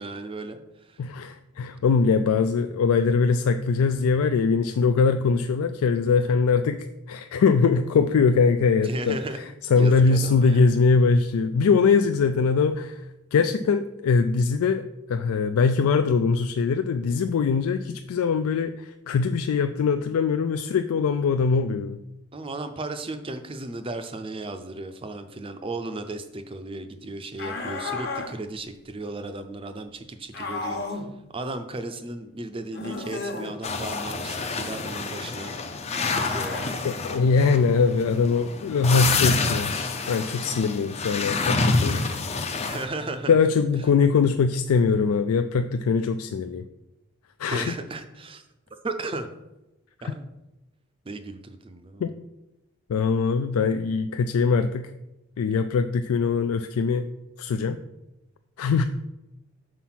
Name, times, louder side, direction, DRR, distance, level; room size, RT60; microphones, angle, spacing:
voice 1, 0.0-1.0 8.8-9.4 9.8-10.7 22.3-31.0 31.3-35.5 36.1-36.9 42.7-43.3 47.4-48.4 48.8-49.3 50.0-50.3 51.1-52.0, right 2 dB, 25° right, 8 dB, 0.5 m, -35 dB
voice 2, 1.0-13.0 13.3-22.0 36.8-42.0 43.3-46.7 47.4-47.7 50.0-50.1 52.0-52.1 52.9-54.9 55.4-57.1 57.4-57.8 58.6-58.8, left 5 dB, 85° left, 9 dB, 0.3 m, -22 dB
sound 1, 27.4-28.3 30.3-31.1 32.7-33.5 35.9-36.7, left 3 dB, 50° left, 1.1 m, -32 dB
sound 2, 33.6-42.8, left 4 dB, 30° left, 0.5 m, -28 dB
5.7 x 4.6 x 5.9 m, 0.95 s
head